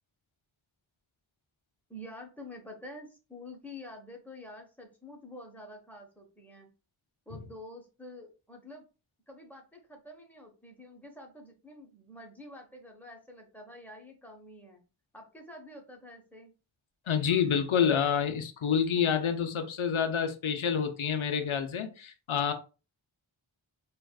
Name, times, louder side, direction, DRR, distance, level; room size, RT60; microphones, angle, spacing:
voice 1, 1.9-6.7 7.3-8.9 9.3-14.8 15.1-16.5, left 1 dB, 5° left, 1.0 m, -48 dB
voice 2, 17.1-22.5, left 7 dB, 90° left, 0.6 m, -28 dB
4.7 x 2.4 x 2.3 m
wide cardioid pair, 55°, 47 cm